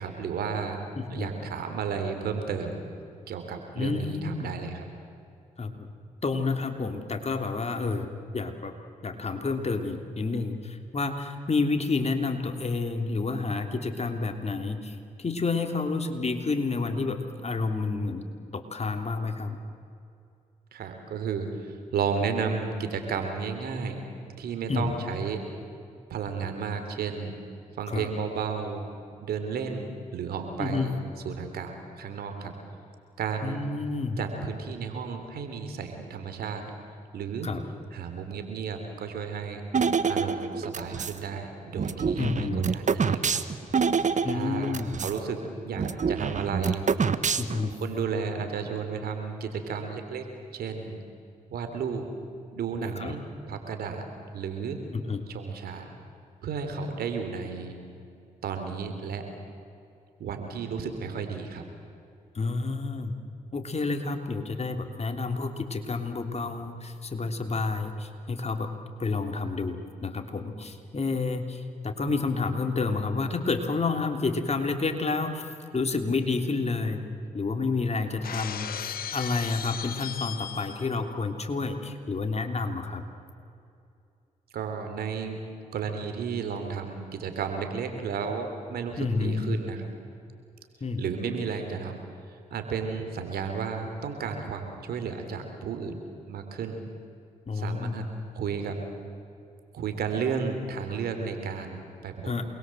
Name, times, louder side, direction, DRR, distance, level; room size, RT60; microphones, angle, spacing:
voice 1, 0.0-0.8 1.1-2.8 3.3-4.9 20.7-24.0 24.4-25.4 26.1-27.4 27.8-28.9 29.2-31.0 31.2-32.5 33.2-33.6 34.2-36.7 37.1-37.5 37.9-39.6 40.1-43.4 44.3-46.9 47.7-50.3 50.5-51.0 51.5-52.1 52.5-54.1 54.3-54.8 55.3-55.9 56.4-57.8 58.4-59.3 60.2-61.6 84.5-85.5 85.7-89.9 91.0-92.0 92.3-95.9 96.3-96.8 97.5-98.1 98.3-98.8 99.7-102.3, right 6 dB, 85° right, 6 dB, 3.5 m, -33 dB
voice 2, 1.0-1.3 3.7-4.5 5.6-5.9 6.2-8.7 9.0-18.2 18.5-19.6 24.7-24.9 27.9-28.1 30.6-30.9 33.4-34.2 37.4-37.6 42.2-42.6 44.2-45.0 47.4-47.7 53.0-53.1 54.9-55.2 62.3-63.1 63.5-68.7 69.0-75.5 75.7-77.0 77.3-78.7 79.1-83.0 89.0-89.6 90.8-91.0 97.5-98.1 102.3-102.4, left 3 dB, 45° left, 6 dB, 3.3 m, -29 dB
sound 1, 39.7-41.2 41.8-45.2 45.4-45.5 45.8-47.7, right 5 dB, 50° right, 1.4 m, -26 dB
Shatter, 78.2-81.0, left 9 dB, 75° left, 1.1 m, -36 dB
28.0 x 22.0 x 7.9 m, 2.6 s
supercardioid pair, 50°, 15 cm